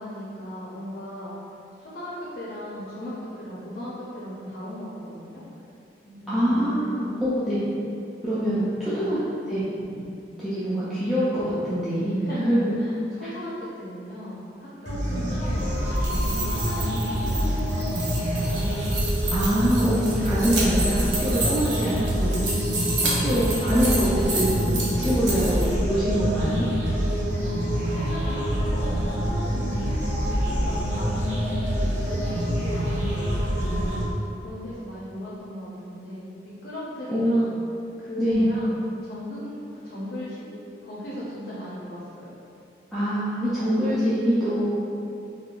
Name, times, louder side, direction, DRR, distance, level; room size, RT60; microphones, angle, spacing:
voice 1, 0.0-1.3 1.8-5.4 6.0-7.0 8.9-9.4 12.2-18.8 23.0-23.3 27.1-34.0 34.4-36.3 36.6-37.6 38.0-42.3, equal, 60° left, -8 dB, 0.5 m, -37 dB
voice 2, 6.3-7.6 8.2-9.2 9.5-9.8 10.4-12.7 15.1-15.3 19.3-22.6 23.2-26.6 37.1-37.4 38.2-38.5 42.9-44.8, equal, ahead, -13 dB, 0.3 m, -24 dB
sound 1, 14.8-34.0, equal, 40° right, 1.0 m, -26 dB
sound 2, 15.8-25.6, right 2 dB, 85° right, 0.7 m, -31 dB
3.6 x 2.2 x 2.4 m, 2.7 s
head